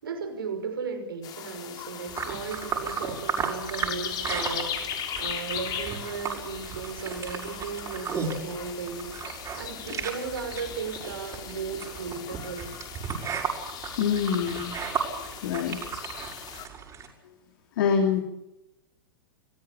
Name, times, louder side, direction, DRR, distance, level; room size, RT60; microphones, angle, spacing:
voice 1, 0.0-12.7, right 5 dB, 75° right, 6 dB, 5.7 m, -36 dB
sound 1, 1.2-16.7, left 9 dB, 35° left, 3.4 m, -38 dB
sound 2, 2.1-17.1, right 6 dB, 25° right, 6.1 m, -35 dB
voice 2, 14.0-14.8 15.4-15.8 17.8-18.2, left 7 dB, 60° left, 4 dB, 3.0 m, -25 dB
27.0 x 16.0 x 8.7 m, 0.92 s
hypercardioid pair, 105°, 12 cm